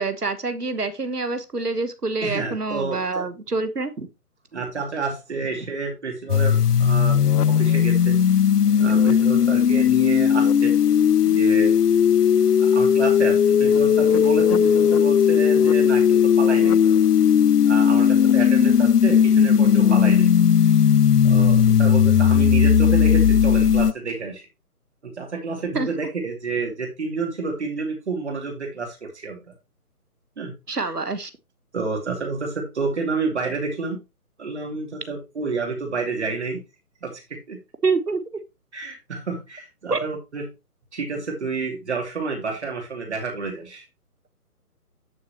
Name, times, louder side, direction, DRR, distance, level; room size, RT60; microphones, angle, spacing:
voice 1, 0.0-4.1 25.7-25.9 30.7-31.3 37.8-38.4 39.9-40.1, right 3 dB, 90° right, 1.3 m, -26 dB
voice 2, 2.2-3.2 4.5-7.2 7.4-8.2 8.8-10.7 11.2-11.7 12.6-16.8 17.6-20.3 20.7-20.8 21.2-24.5 25.0-29.5 30.4-30.9 31.7-34.0 34.4-36.6 37.0-37.2 37.5-37.6 38.7-40.5 40.9-43.8, right 4 dB, 45° right, 2.7 m, -29 dB
sound 1, 6.3-23.9, left 8 dB, 85° left, 0.5 m, -17 dB
10.5 x 6.6 x 2.9 m
figure-of-eight pair, 145°, 46 cm